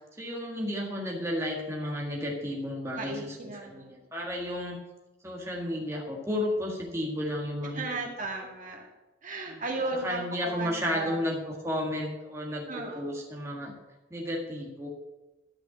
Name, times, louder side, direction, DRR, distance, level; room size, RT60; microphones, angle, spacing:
voice 1, 0.2-4.8 5.2-8.1 9.5-9.6 10.0-13.7 14.1-14.9, left 1 dB, 15° right, -2 dB, 1.7 m, -33 dB
voice 2, 2.9-4.0 7.7-8.9 9.2-11.2 12.7-13.1, right 2 dB, 45° right, 0 dB, 2.0 m, -35 dB
11.5 x 5.7 x 8.3 m, 1.1 s
head